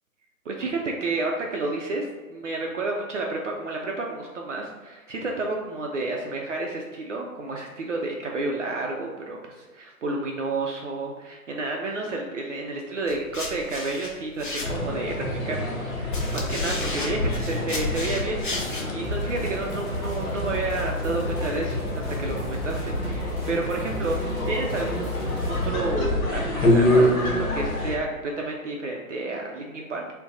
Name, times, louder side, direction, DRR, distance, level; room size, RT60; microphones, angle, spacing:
voice 1, 0.5-30.0, right 2 dB, 60° right, 0 dB, 0.5 m, -31 dB
sound 1, 13.1-15.1 15.8-18.9, left 2 dB, 40° left, 0.4 m, -33 dB
sound 2, 14.6-28.0, left 1 dB, 70° left, 0.8 m, -27 dB
sound 3, 19.0-25.7, left 1 dB, 10° right, 0.7 m, -33 dB
2.7 x 2.2 x 3.6 m, 1.3 s
figure-of-eight pair, 135°, 43 cm